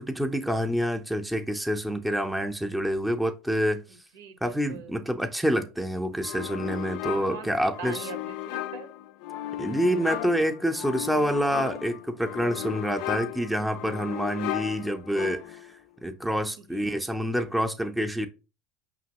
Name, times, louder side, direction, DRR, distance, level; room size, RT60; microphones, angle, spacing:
voice 1, 0.0-3.8 4.4-8.1 9.6-15.7 16.0-18.3, equal, 5° right, 0.6 m, -27 dB
voice 2, 3.9-4.9 7.3-8.9 16.6-16.9, right 5 dB, 85° right, 1.0 m, -43 dB
sound 1, 6.2-15.7, left 13 dB, 70° left, 0.4 m, -36 dB
5.1 x 2.9 x 2.9 m
hypercardioid pair, 90°, 0 cm